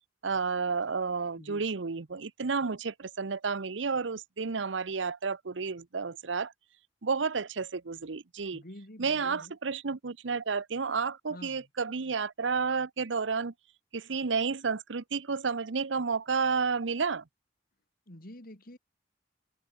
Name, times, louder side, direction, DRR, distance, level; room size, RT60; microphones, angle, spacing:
voice 1, 0.2-6.5 7.0-8.6 9.0-13.5 13.9-17.2, right 5 dB, 90° right, 0.8 m, -31 dB
voice 2, 1.4-1.7 8.5-9.5 11.3-11.7 18.1-18.8, left 1 dB, 55° left, 4.1 m, -48 dB
head